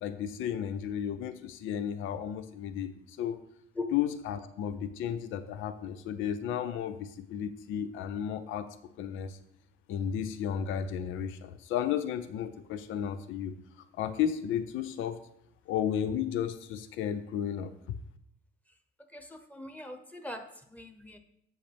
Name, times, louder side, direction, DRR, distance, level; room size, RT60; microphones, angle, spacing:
voice 1, 0.0-2.9 3.2-3.4 3.9-8.7 9.0-9.4 9.9-13.5 14.0-15.2 15.7-17.7, left 9 dB, 90° left, 11 dB, 0.6 m, -33 dB
voice 2, 19.1-20.4 20.7-21.2, left 2 dB, 5° left, 7 dB, 1.0 m, -41 dB
7.9 x 7.4 x 3.4 m, 0.73 s
cardioid pair, 90°, 20 cm